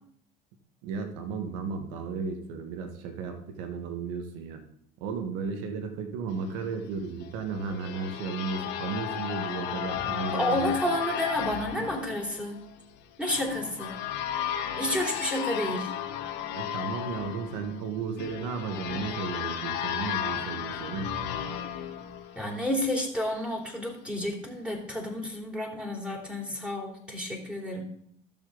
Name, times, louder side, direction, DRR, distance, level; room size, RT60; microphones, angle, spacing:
voice 1, 0.8-4.6 5.0-10.7 16.5-21.1, right 5 dB, 75° right, 5 dB, 1.5 m, -34 dB
sound 1, 7.2-22.9, left 10 dB, 65° left, 1.6 m, -34 dB
voice 2, 10.3-12.6 13.2-14.0 14.8-15.9 22.3-27.8, left 1 dB, 5° right, 0 dB, 3.5 m, -30 dB
12.5 x 7.2 x 3.9 m, 0.67 s
supercardioid pair, 85°, 20 cm